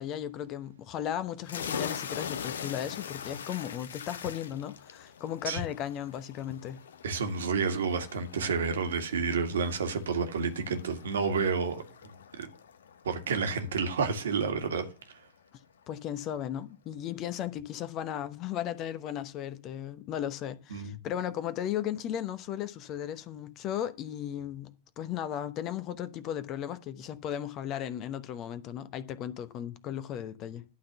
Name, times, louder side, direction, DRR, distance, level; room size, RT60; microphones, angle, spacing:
voice 1, 0.0-6.8 15.9-24.7 25.0-30.6, left 10 dB, 35° left, 0.9 m, -36 dB
sound 1, 1.4-14.8, left 7 dB, 65° left, 0.7 m, -43 dB
voice 2, 7.0-12.5 13.0-14.9 20.7-20.9, right 5 dB, 65° right, 1.8 m, -30 dB
11.5 x 3.9 x 7.8 m
figure-of-eight pair, 90°, 0 cm